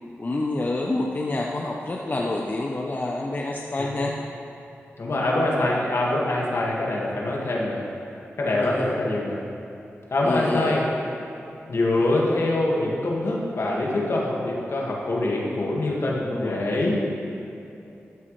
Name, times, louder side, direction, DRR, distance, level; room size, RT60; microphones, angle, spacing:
voice 1, 0.2-4.2 5.7-5.9 8.6-8.9 10.2-10.8 16.3-16.6, left 2 dB, 40° left, -1 dB, 0.9 m, -28 dB
voice 2, 5.0-7.8 8.4-9.4 10.1-10.9 11.7-17.0, left 2 dB, 65° left, -3 dB, 2.1 m, -24 dB
13.5 x 9.5 x 3.4 m, 2.8 s
cardioid pair, 50°, 5 cm